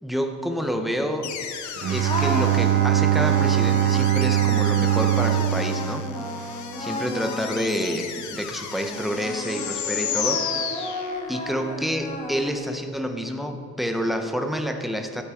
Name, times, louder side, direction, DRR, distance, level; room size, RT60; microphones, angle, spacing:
voice 1, 0.0-1.4 1.9-6.1 6.8-10.5 11.3-15.2, equal, ahead, 5 dB, 0.6 m, -28 dB
sound 1, 1.2-11.5, left 8 dB, 70° left, 1.0 m, -34 dB
Bowed string instrument, 1.8-7.0, right 12 dB, 40° right, 0.5 m, -22 dB
sound 2, 2.0-8.3 8.9-12.8, left 1 dB, 15° left, 1.2 m, -33 dB
13.0 x 7.7 x 4.6 m, 2.5 s
cardioid pair, 160°, 30 cm